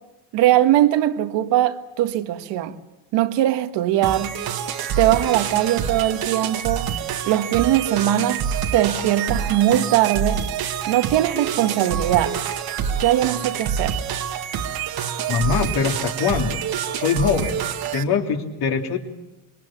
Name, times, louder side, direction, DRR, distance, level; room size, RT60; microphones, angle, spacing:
voice 1, 0.3-2.7 3.1-4.3 5.0-6.9 7.3-8.4 8.7-10.4 10.9-12.4 13.0-14.0, right 13 dB, 65° right, 1.7 m, -20 dB
sound 1, 4.0-18.0, right 8 dB, 50° right, 1.8 m, -27 dB
voice 2, 15.3-16.6 16.9-17.6 17.9-19.0, left 6 dB, 55° left, 3.2 m, -22 dB
25.5 x 21.5 x 7.4 m
cardioid pair, 115°, 45 cm